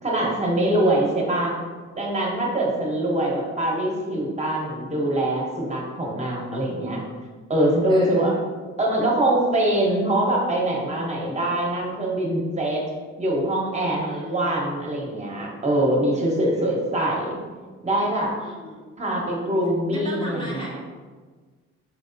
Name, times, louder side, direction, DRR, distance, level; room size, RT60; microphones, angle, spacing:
voice 1, 0.0-1.6 1.9-7.0 7.5-8.3 8.8-12.8 13.2-17.4 17.8-18.3 19.0-20.8, right 1 dB, 20° right, -2 dB, 1.1 m, -23 dB
voice 2, 0.8-1.3 7.9-8.4 14.0-14.6 16.5-16.8 18.4-18.9 19.9-20.8, left 1 dB, 15° left, -3 dB, 0.5 m, -37 dB
4.7 x 3.4 x 2.6 m, 1.4 s
cardioid pair, 90°, 30 cm